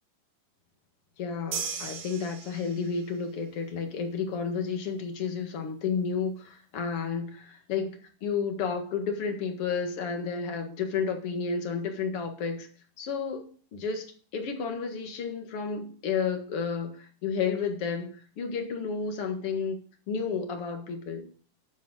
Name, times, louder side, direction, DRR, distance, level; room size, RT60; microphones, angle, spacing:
voice 1, 1.2-7.9 8.2-12.7 13.0-14.1 14.3-19.8 20.1-21.3, left 5 dB, 50° left, 2.4 m, -31 dB
sound 1, 1.5-3.1, right 6 dB, 85° right, 3.0 m, -36 dB
9.8 x 7.3 x 6.2 m
omnidirectional pair, 3.8 m